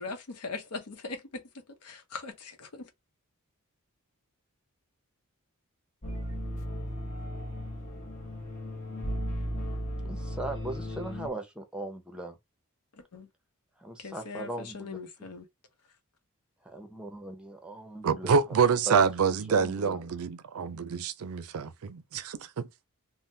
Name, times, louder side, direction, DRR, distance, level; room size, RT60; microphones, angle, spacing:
voice 1, 0.0-1.4 1.8-2.9 13.1-13.3 14.0-15.5, left 3 dB, 90° left, 0.8 m, -40 dB
sound 1, 6.0-11.3, equal, 35° left, 0.8 m, -35 dB
voice 2, 10.0-12.4 13.8-15.0 16.6-18.4 18.9-20.0, right 1 dB, 5° right, 0.7 m, -39 dB
voice 3, 18.0-22.6, right 6 dB, 70° right, 0.4 m, -27 dB
3.4 x 2.1 x 2.6 m
head